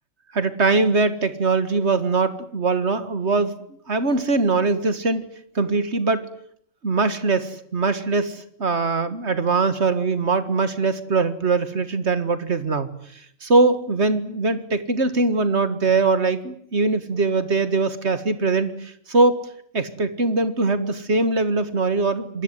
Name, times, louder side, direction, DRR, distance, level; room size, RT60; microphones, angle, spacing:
voice 1, 0.3-3.6 3.9-5.3 5.6-6.3 6.8-12.9 13.4-19.4 19.7-22.4, right 3 dB, 55° right, 12 dB, 2.0 m, -22 dB
27.0 x 20.0 x 9.4 m, 0.68 s
omnidirectional pair, 1.4 m